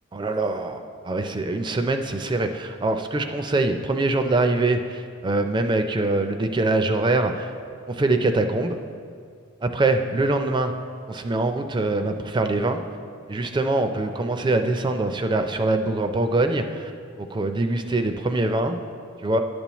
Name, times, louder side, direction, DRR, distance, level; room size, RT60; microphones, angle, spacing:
voice 1, 0.1-7.5 7.9-8.8 9.6-10.7 11.1-12.8 13.3-16.9 17.2-18.8 19.2-19.4, right 2 dB, 20° right, 7 dB, 0.4 m, -23 dB
11.0 x 6.9 x 3.0 m, 2.2 s
head